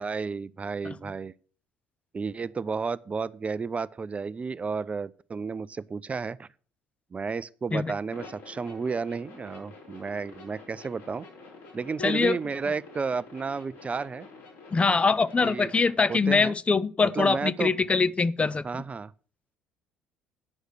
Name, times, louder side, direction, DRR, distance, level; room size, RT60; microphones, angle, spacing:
voice 1, 0.0-1.3 2.1-6.5 7.1-11.3 11.7-14.3 15.4-15.7 16.1-16.6 17.1-17.7 18.6-19.1, right 5 dB, 25° right, 0.4 m, -32 dB
sound 1, 8.1-15.9, left 4 dB, 70° left, 3.8 m, -47 dB
voice 2, 12.0-12.4 14.7-18.6, left 4 dB, 25° left, 0.5 m, -23 dB
9.6 x 6.4 x 6.4 m
figure-of-eight pair, 55°, 5 cm